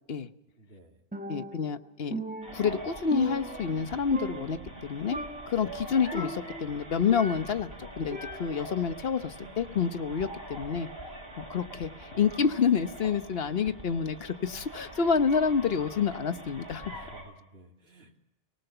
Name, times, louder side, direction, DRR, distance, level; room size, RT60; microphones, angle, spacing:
voice 1, 0.6-1.0 16.0-16.1 16.9-18.2, right 2 dB, 80° right, 1 dB, 3.0 m, -54 dB
Percussion, 1.1-1.8 2.1-3.9 4.1-4.8 5.1-5.6 6.1-7.7 8.1-8.8, right 1 dB, 10° right, 0.9 m, -38 dB
voice 2, 1.3-2.2 2.5-5.2 5.5-10.9 11.4-16.8, left 6 dB, 70° left, 10 dB, 1.2 m, -28 dB
sound 1, 2.4-17.2, right 1 dB, 65° right, 7.6 m, -44 dB
24.0 x 19.0 x 6.8 m, 0.91 s
omnidirectional pair, 1.0 m